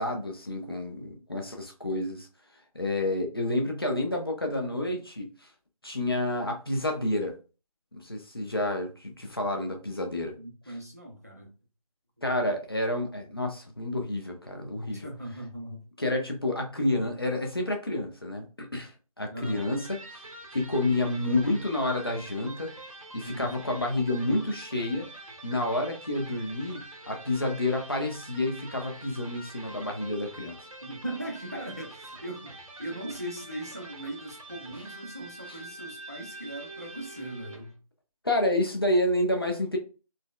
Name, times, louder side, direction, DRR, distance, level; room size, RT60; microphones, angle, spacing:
voice 1, 0.0-2.3 2.7-5.3 5.8-7.3 7.9-10.3 12.2-15.1 16.0-20.2 20.5-22.7 23.1-25.1 25.4-30.6 38.2-39.8, left 1 dB, 40° left, 0.6 m, -29 dB
voice 2, 10.4-11.5 14.9-15.8 19.3-19.7 23.2-23.6 30.8-37.8, right 1 dB, 25° right, 0.5 m, -39 dB
Electric guitar, 19.4-37.8, right 2 dB, 60° right, 0.8 m, -46 dB
3.9 x 2.1 x 2.3 m
figure-of-eight pair, 175°, 19 cm